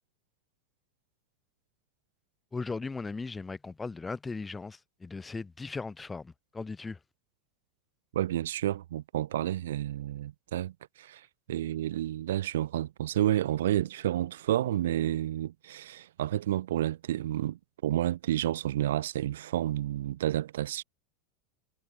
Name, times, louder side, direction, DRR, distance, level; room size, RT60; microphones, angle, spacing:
voice 1, 2.5-7.0, left 4 dB, 15° left, 2.2 m, -38 dB
voice 2, 8.1-20.8, right 13 dB, 75° right, 0.6 m, -30 dB
hypercardioid pair, 100°, 0 cm